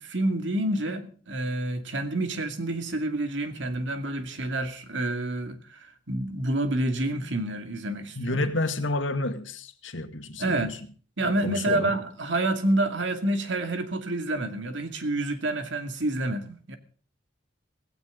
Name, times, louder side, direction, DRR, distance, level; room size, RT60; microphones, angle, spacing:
voice 1, 0.0-8.5 10.4-10.8 11.2-16.8, right 1 dB, 70° right, 2.4 m, -28 dB
voice 2, 8.2-10.8 11.2-11.9, left 2 dB, 85° left, 2.0 m, -30 dB
17.0 x 16.5 x 3.9 m
head